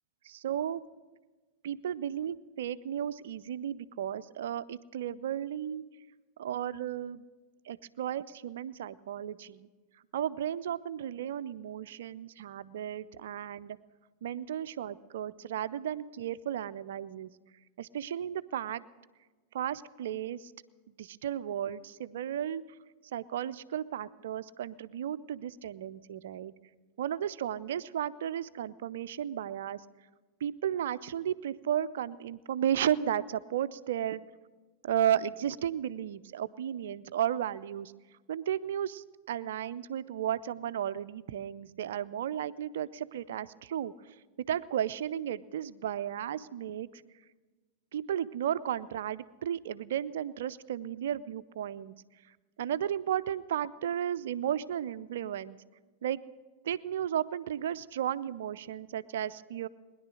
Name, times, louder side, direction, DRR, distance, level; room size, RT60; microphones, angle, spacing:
voice 1, 0.2-0.8 1.6-5.8 6.4-7.2 7.6-9.7 10.1-13.8 14.2-17.3 17.8-18.8 19.5-20.5 21.0-22.6 23.1-26.5 27.0-29.8 30.4-34.2 34.8-37.9 38.3-44.2 44.5-47.0 47.9-51.9 52.6-55.6 56.0-56.2 56.6-59.7, right 10 dB, 60° right, 16 dB, 0.5 m, -34 dB
20.5 x 11.0 x 6.3 m, 1.3 s
figure-of-eight pair, 90°, 0 cm